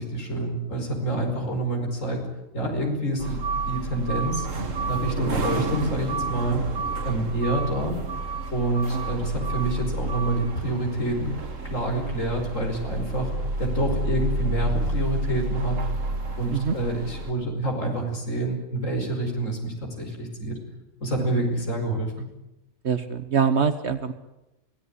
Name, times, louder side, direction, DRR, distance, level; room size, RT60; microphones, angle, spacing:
voice 1, 0.0-2.3 2.5-3.4 3.7-4.5 4.9-6.6 7.0-8.0 8.5-11.3 11.6-13.3 13.6-15.8 16.4-20.6 21.0-22.3, right 1 dB, 85° left, 2 dB, 5.6 m, -27 dB
sound 1, 3.2-17.3, right 3 dB, 80° right, 2.3 m, -30 dB
voice 2, 22.8-24.1, right 6 dB, 60° right, 10 dB, 1.4 m, -24 dB
25.0 x 16.5 x 9.8 m, 0.93 s
omnidirectional pair, 1.3 m